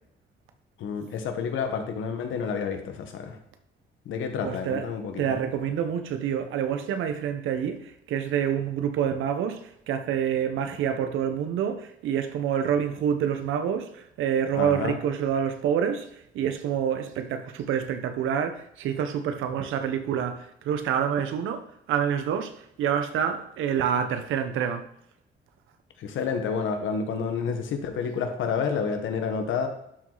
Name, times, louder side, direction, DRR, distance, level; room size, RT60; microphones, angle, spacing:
voice 1, 0.8-3.4 4.0-5.2 14.5-15.0 26.0-29.7, left 6 dB, 80° left, 1.4 m, -29 dB
voice 2, 4.4-4.9 5.2-16.1 16.3-24.9, right 8 dB, 85° right, 1.1 m, -27 dB
12.0 x 4.8 x 4.1 m
cardioid pair, 90°, 20 cm